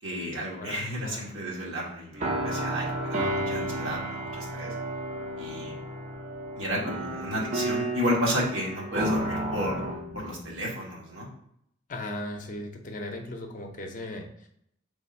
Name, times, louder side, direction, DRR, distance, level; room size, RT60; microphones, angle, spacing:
voice 1, 0.0-4.7 5.4-5.8 6.5-9.8 10.1-11.3, equal, 75° right, -4 dB, 1.3 m, -32 dB
voice 2, 0.6-1.2 11.9-14.5, left 1 dB, 40° left, 3 dB, 0.5 m, -37 dB
sound 1, 2.1-10.6, right 1 dB, 35° right, 0.5 m, -32 dB
3.4 x 2.5 x 4.1 m, 0.73 s
head